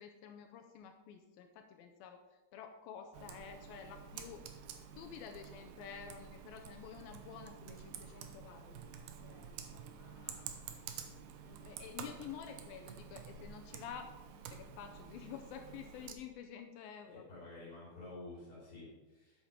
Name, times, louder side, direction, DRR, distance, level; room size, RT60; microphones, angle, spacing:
voice 1, 0.0-2.2 2.5-4.4 4.8-8.8 9.2-10.5 11.4-14.1 14.5-17.2, left 8 dB, 85° left, 6 dB, 2.2 m, -50 dB
Computer keyboard, 3.1-16.1, right 7 dB, 80° right, 1.9 m, -50 dB
voice 2, 17.1-19.5, left 2 dB, 25° left, -6 dB, 2.8 m, -51 dB
8.6 x 7.9 x 5.2 m, 1.2 s
omnidirectional pair, 4.8 m